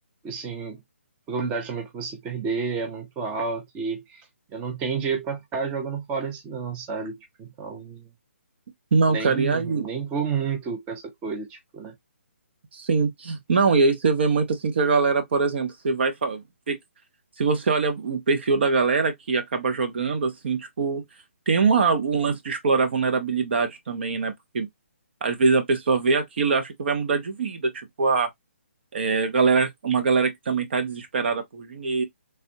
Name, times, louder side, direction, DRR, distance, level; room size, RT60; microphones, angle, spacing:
voice 1, 0.2-0.8 1.3-4.3 4.5-8.1 9.1-11.9, right 5 dB, 15° right, 0.6 m, -30 dB
voice 2, 8.9-9.9 12.7-16.8 17.4-21.0 21.5-24.7 25.2-28.3 28.9-32.0, right 4 dB, 55° right, 0.9 m, -23 dB
3.4 x 2.5 x 2.6 m
hypercardioid pair, 150°, 7 cm